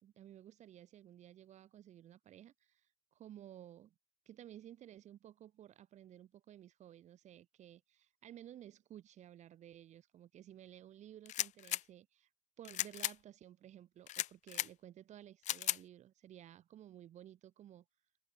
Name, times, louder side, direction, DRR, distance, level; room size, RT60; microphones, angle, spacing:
voice 1, 0.0-3.9 4.2-12.3 12.6-17.8, right 11 dB, 75° right, 3.2 m, -55 dB
sound 1, 11.2-11.8 12.6-13.1 14.1-14.7 15.4-15.8, left 14 dB, 85° left, 0.7 m, -36 dB
cardioid pair, 100°, 12 cm